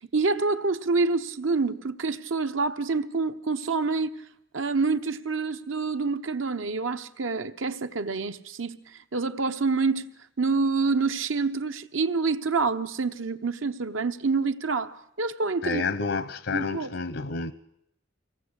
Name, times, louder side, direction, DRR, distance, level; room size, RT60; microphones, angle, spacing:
voice 1, 0.1-4.2 4.5-8.8 9.1-10.0 10.4-15.8 16.5-16.9, right 4 dB, 80° right, 1.0 m, -27 dB
voice 2, 15.6-17.5, left 4 dB, 80° left, 0.9 m, -29 dB
24.5 x 18.0 x 8.2 m
head